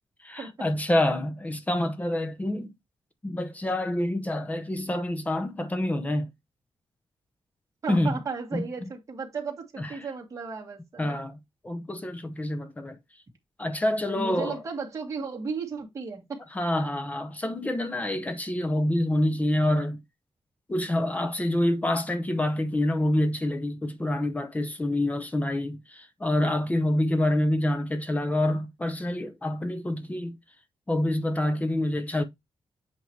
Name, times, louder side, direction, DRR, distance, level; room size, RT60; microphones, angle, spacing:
voice 1, 0.2-2.7 3.2-6.3 7.9-8.2 8.5-8.9 9.8-10.0 11.0-11.4 11.6-13.0 13.6-14.6 16.5-20.0 20.7-30.4 30.9-32.2, left 1 dB, 15° left, 0.8 m, -27 dB
voice 2, 7.8-11.2 14.2-16.4, right 5 dB, 35° right, 2.0 m, -35 dB
8.0 x 2.9 x 4.6 m
wide cardioid pair, 165°, 10 cm